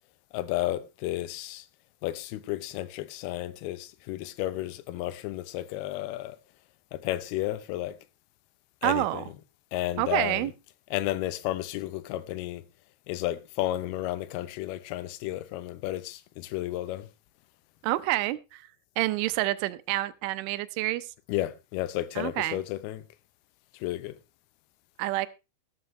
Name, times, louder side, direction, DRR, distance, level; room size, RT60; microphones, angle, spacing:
voice 1, 0.3-1.6 2.0-6.4 6.9-8.0 8.8-9.2 9.7-10.5 10.9-12.6 13.1-17.1 21.3-23.0 23.8-24.1, left 15 dB, 85° left, 2.2 m, -32 dB
voice 2, 8.8-9.2 10.0-10.5 17.8-18.7 19.0-21.1 22.2-22.6 25.0-25.3, right 17 dB, 85° right, 3.2 m, -28 dB
13.5 x 13.5 x 3.1 m
omnidirectional pair, 5.4 m